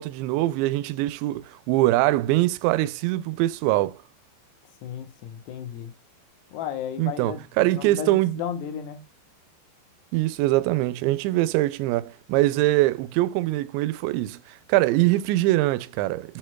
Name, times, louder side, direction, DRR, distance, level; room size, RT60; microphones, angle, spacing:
voice 1, 0.0-4.0 7.0-8.4 10.1-16.4, right 17 dB, 85° right, 2.8 m, -23 dB
voice 2, 4.8-5.9 6.5-9.0, left 9 dB, 70° left, 3.0 m, -34 dB
7.8 x 6.6 x 2.2 m
omnidirectional pair, 5.3 m